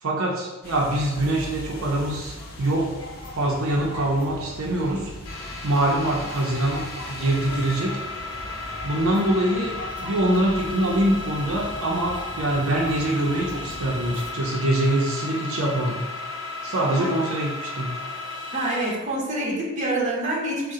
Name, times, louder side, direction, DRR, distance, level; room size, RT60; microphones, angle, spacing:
voice 1, 0.0-2.9 3.3-5.1 5.6-8.0 8.8-9.7 10.0-16.1 16.6-17.9, right 1 dB, 70° right, -3 dB, 0.6 m, -24 dB
sound 1, 0.6-7.8, left 1 dB, 40° left, 0.4 m, -42 dB
sound 2, 1.2-14.3, equal, 20° left, 0.8 m, -40 dB
sound 3, 5.3-18.9, left 3 dB, 75° left, 0.7 m, -35 dB
voice 2, 18.5-20.7, right 1 dB, 35° right, -4 dB, 0.8 m, -26 dB
3.6 x 2.1 x 4.2 m, 1.2 s
head